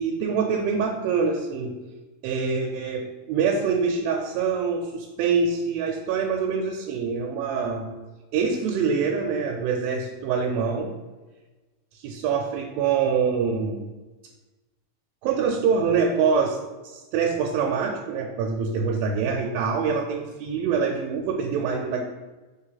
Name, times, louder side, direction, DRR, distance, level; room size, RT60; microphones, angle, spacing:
voice 1, 0.0-1.7 2.2-7.9 8.3-10.9 12.0-13.9 15.2-16.6 16.9-22.0, right 5 dB, 85° right, 2 dB, 2.4 m, -25 dB
4.7 x 4.1 x 5.6 m, 1.2 s
omnidirectional pair, 4.1 m